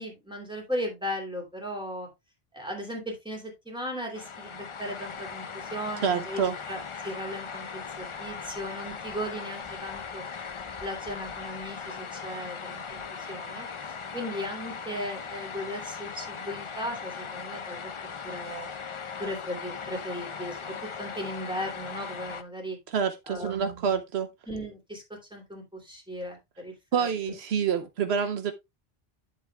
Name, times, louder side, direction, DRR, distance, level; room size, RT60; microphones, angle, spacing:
voice 1, 0.0-2.1 2.5-10.2 10.8-13.7 14.1-17.9 18.2-18.7 19.2-22.8 23.3-24.0 24.5-25.0 25.3-27.4, equal, 5° right, 2.9 m, -37 dB
sound 1, 4.1-22.4, left 6 dB, 40° left, 0.5 m, -39 dB
voice 2, 6.0-6.6 22.9-24.3 26.9-28.5, right 7 dB, 80° right, 1.0 m, -27 dB
9.6 x 7.5 x 2.3 m
omnidirectional pair, 1.1 m